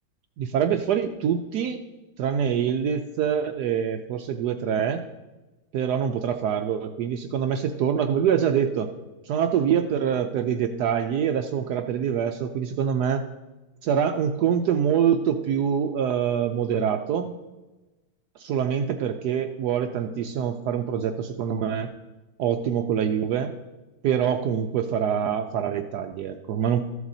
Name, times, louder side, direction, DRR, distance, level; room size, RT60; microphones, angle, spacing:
voice 1, 0.4-1.8 2.2-5.0 5.7-8.9 9.3-13.2 13.8-17.3 18.4-21.9 22.4-23.5 24.0-26.9, right 8 dB, 85° right, 6 dB, 0.8 m, -25 dB
14.5 x 7.9 x 2.7 m, 1.1 s
omnidirectional pair, 2.3 m